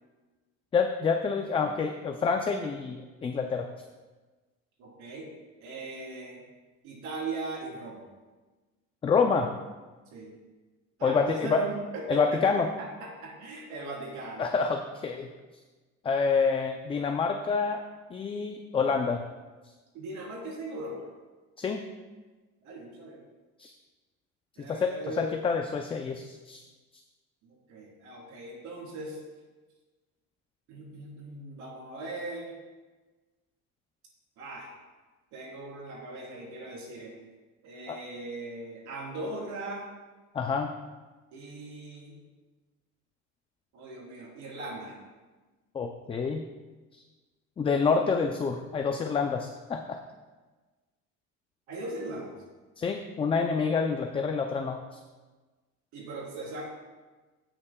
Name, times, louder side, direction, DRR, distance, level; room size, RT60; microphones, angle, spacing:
voice 1, 0.7-3.7 9.0-9.5 11.0-11.6 12.1-12.7 14.4-15.3 16.0-17.8 18.1-19.2 21.6-21.8 23.6-23.7 24.7-26.6 37.9-38.0 40.3-40.7 45.7-46.4 46.9-47.0 47.6-50.0 52.8-54.8, left 5 dB, 20° left, 4 dB, 0.4 m, -27 dB
voice 2, 4.8-5.3 5.6-6.4 6.8-8.0 10.1-10.3 11.0-12.4 12.8-14.5 19.9-21.1 22.6-23.2 24.6-25.3 27.4-29.2 30.7-32.6 34.4-34.7 35.3-37.2 37.6-39.8 41.3-42.2 43.7-44.9 51.7-52.3 55.9-56.6, right 2 dB, 75° right, -2 dB, 3.5 m, -39 dB
16.0 x 8.7 x 2.3 m, 1.3 s
cardioid pair, 155°, 29 cm